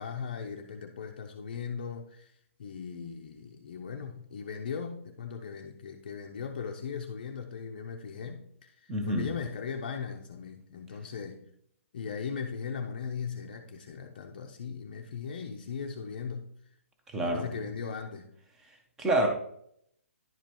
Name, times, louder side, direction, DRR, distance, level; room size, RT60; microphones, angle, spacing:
voice 1, 0.0-11.4 11.9-16.8 17.2-18.3, left 6 dB, 35° left, 3 dB, 0.6 m, -38 dB
voice 2, 8.9-9.3 17.1-17.5 19.0-19.3, right 1 dB, 5° right, 3 dB, 0.6 m, -27 dB
11.0 x 5.2 x 3.0 m, 0.70 s
hypercardioid pair, 175°, 8 cm